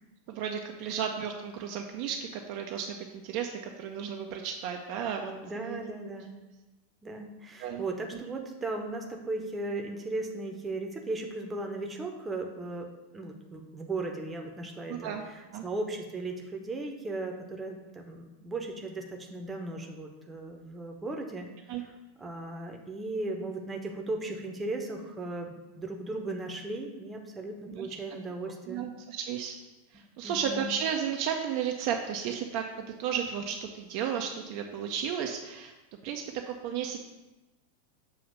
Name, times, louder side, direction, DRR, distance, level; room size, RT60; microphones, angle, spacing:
voice 1, 0.3-6.1 7.6-7.8 8.3-8.4 14.9-15.2 15.5-15.6 21.7-21.8 27.7-27.9 28.7-29.5 29.9-35.7 36.0-37.0, right 8 dB, 45° right, 3 dB, 0.4 m, -34 dB
voice 2, 5.4-6.3 7.0-21.9 22.2-28.8 30.2-30.7, right 2 dB, 15° right, 2 dB, 0.8 m, -37 dB
7.0 x 2.8 x 5.4 m, 1.1 s
figure-of-eight pair, 90°, 0 cm